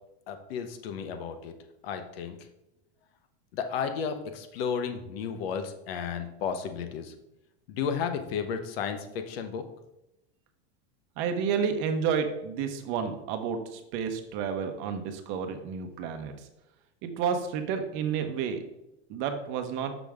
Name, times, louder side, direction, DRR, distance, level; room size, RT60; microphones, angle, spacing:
voice 1, 0.3-1.5 1.8-2.4 3.5-7.1 7.7-9.6, left 6 dB, 70° left, 8 dB, 1.0 m, -33 dB
voice 2, 11.2-16.3 17.0-18.6 19.1-19.9, right 7 dB, 40° right, 7 dB, 0.9 m, -30 dB
6.3 x 6.1 x 3.5 m, 0.88 s
supercardioid pair, 160°, 31 cm